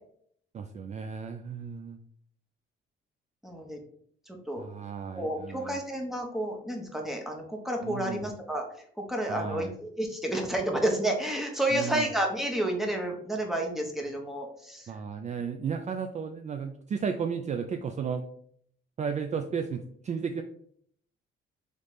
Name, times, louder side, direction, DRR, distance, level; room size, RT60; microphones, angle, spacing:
voice 1, 0.5-2.0 4.6-5.8 7.8-8.3 9.3-9.7 11.7-12.1 14.9-18.2 19.0-20.4, right 6 dB, 35° right, 6 dB, 0.4 m, -34 dB
voice 2, 3.4-3.8 4.3-4.6 5.1-8.6 9.1-14.9, right 1 dB, ahead, 1 dB, 1.0 m, -30 dB
3.3 x 3.2 x 4.0 m, 0.63 s
cardioid pair, 90°, 20 cm